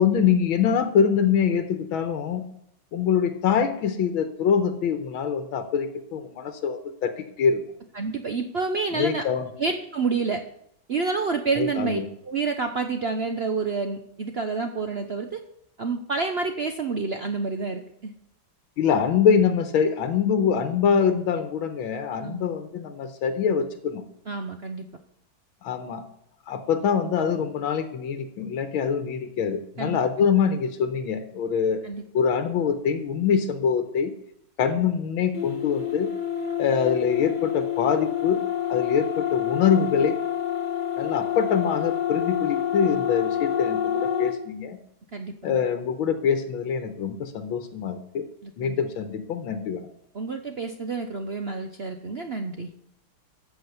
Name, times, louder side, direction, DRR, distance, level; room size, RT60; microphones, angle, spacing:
voice 1, 0.0-2.5 2.9-7.6 8.9-9.5 11.5-12.1 18.8-24.0 25.6-26.0 26.5-31.8 32.1-34.1 34.6-36.1 36.6-38.4 38.7-40.2 41.0-44.8 45.4-48.3 48.6-49.9, left 7 dB, 85° left, 8 dB, 1.8 m, -24 dB
voice 2, 7.9-9.3 9.6-10.4 10.9-15.4 15.8-18.1 22.2-22.4 24.3-24.9 29.8-30.0 31.8-32.0 45.1-45.6 48.4-48.8 50.1-52.7, right 4 dB, 75° right, 6 dB, 0.5 m, -29 dB
sound 1, 35.3-44.4, left 9 dB, 30° left, 1.1 m, -28 dB
13.0 x 6.1 x 8.1 m, 0.77 s
omnidirectional pair, 2.2 m